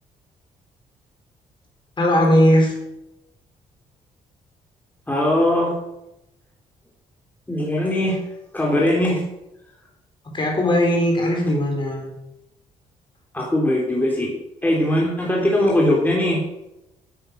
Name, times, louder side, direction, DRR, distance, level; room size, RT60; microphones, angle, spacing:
voice 1, 2.0-2.8 10.2-12.1, equal, 35° left, 0 dB, 4.6 m, -18 dB
voice 2, 5.1-5.7 7.5-8.2 8.5-9.2 13.3-14.3 14.6-16.4, left 1 dB, 10° left, -2 dB, 3.6 m, -20 dB
9.6 x 7.8 x 6.6 m, 0.91 s
cardioid pair, 75°, 14 cm